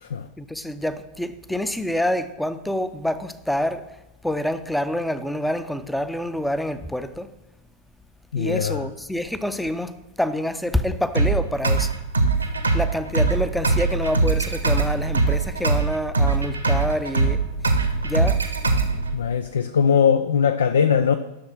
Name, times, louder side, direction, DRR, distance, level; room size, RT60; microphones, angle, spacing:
voice 1, 0.4-3.9 4.2-7.3 8.4-12.0 12.5-17.7 18.0-18.4, left 1 dB, 5° left, 0.6 m, -27 dB
voice 2, 8.3-8.8 19.1-21.2, left 7 dB, 65° left, 0.5 m, -20 dB
sound 1, 11.1-19.1, right 3 dB, 80° right, 1.2 m, -22 dB
11.5 x 6.5 x 6.2 m
figure-of-eight pair, 90°, 0 cm